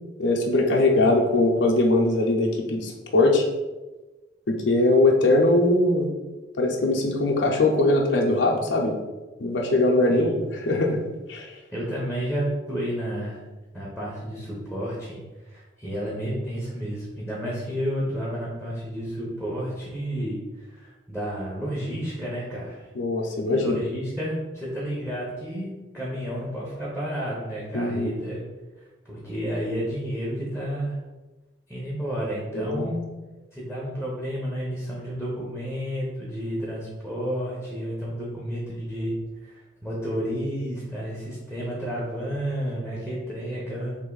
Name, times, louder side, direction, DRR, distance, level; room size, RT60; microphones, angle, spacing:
voice 1, 0.2-3.4 4.5-6.1 6.5-9.0 9.4-10.4 10.6-11.0 11.3-11.5 23.0-23.8 27.7-28.1 32.5-32.9, left 2 dB, 80° left, 0 dB, 0.6 m, -21 dB
voice 2, 11.7-13.4 13.7-22.9 23.5-28.4 29.1-31.0 31.7-33.0 33.5-39.1 39.4-44.0, equal, 5° right, -5 dB, 0.7 m, -31 dB
3.4 x 2.6 x 3.8 m, 1.2 s
head